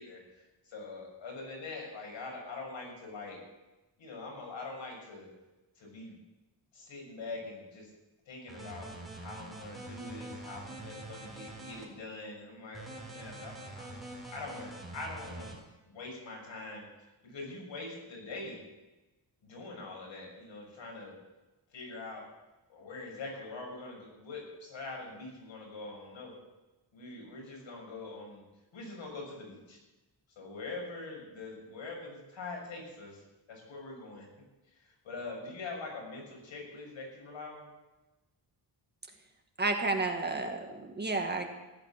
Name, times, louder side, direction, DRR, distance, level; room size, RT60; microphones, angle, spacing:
voice 1, 0.0-3.4 4.0-5.3 5.8-6.2 6.7-7.9 8.3-15.6 15.9-16.9 17.2-18.6 19.4-21.1 21.7-22.3 22.7-26.3 26.9-28.4 28.7-29.8 30.4-33.2 33.5-34.3 34.7-37.7, left 3 dB, 85° left, -1 dB, 7.1 m, -44 dB
sound 1, 8.5-11.8 12.7-15.5, right 2 dB, ahead, 4.0 m, -45 dB
voice 2, 39.6-41.5, right 3 dB, 20° right, 3 dB, 1.8 m, -31 dB
15.5 x 12.0 x 7.4 m, 1.1 s
wide cardioid pair, 165°, 44 cm